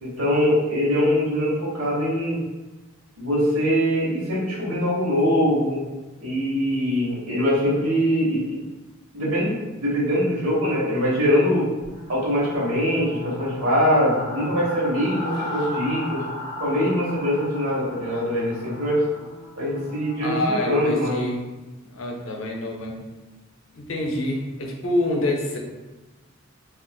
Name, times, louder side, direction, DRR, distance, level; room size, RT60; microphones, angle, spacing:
voice 1, 0.0-2.4 3.2-5.8 6.2-8.6 9.1-11.7 12.1-16.2 16.6-19.0 19.6-21.3, equal, 85° right, -5 dB, 1.1 m, -22 dB
sound 1, 11.8-20.7, left 1 dB, 20° left, 0.5 m, -36 dB
voice 2, 20.2-21.4 21.8-23.0 23.7-25.6, left 1 dB, 65° left, 0 dB, 0.5 m, -26 dB
3.7 x 2.3 x 2.2 m, 1.1 s
head